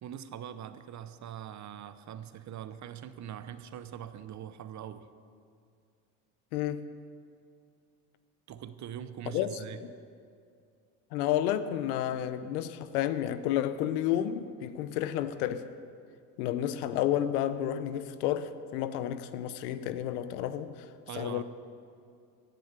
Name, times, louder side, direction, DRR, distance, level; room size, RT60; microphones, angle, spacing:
voice 1, 0.0-5.1 8.5-9.8 21.1-21.4, right 10 dB, 40° right, 0.8 m, -42 dB
voice 2, 6.5-6.8 9.3-9.6 11.1-15.7 16.4-20.7 21.2-21.4, left 11 dB, 80° left, 0.8 m, -31 dB
16.0 x 7.6 x 6.7 m
supercardioid pair, 85°, 45 cm